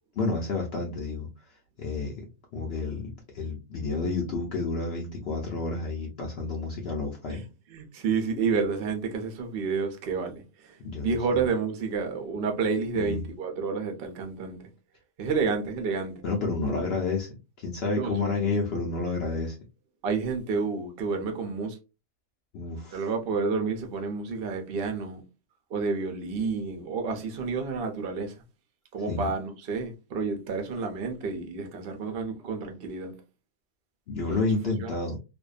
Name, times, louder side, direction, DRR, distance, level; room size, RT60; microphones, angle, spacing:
voice 1, 0.2-1.3 1.8-2.3 2.5-7.4 10.8-11.4 13.0-13.2 16.2-17.3 17.6-19.6 22.5-23.0 29.1-29.3 34.1-35.2, left 3 dB, 85° left, 0.5 m, -30 dB
voice 2, 7.7-14.7 15.2-16.2 17.9-18.5 20.0-21.8 22.9-25.2 25.7-28.4 28.9-33.1 34.3-34.4 34.8-34.9, right 4 dB, 70° right, 0.5 m, -30 dB
2.5 x 2.2 x 2.3 m
omnidirectional pair, 1.7 m